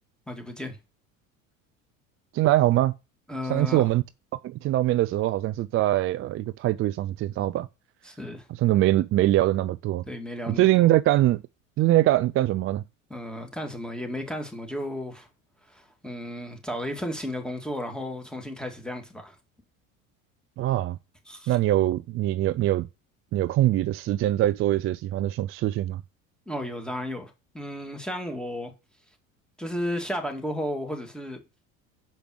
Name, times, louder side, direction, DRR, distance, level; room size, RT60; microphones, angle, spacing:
voice 1, 0.3-0.8 3.3-3.9 8.0-8.5 10.1-10.9 13.1-15.3 15.7-19.4 21.3-21.6 26.5-28.7 29.6-31.4, left 1 dB, ahead, 2.1 m, -34 dB
voice 2, 2.3-2.9 3.5-4.0 4.4-7.7 8.6-10.0 10.5-11.4 11.8-12.8 20.6-21.0 21.5-22.9 23.3-26.0, right 15 dB, 35° right, 0.4 m, -23 dB
6.3 x 5.1 x 5.7 m
hypercardioid pair, 75°, 41 cm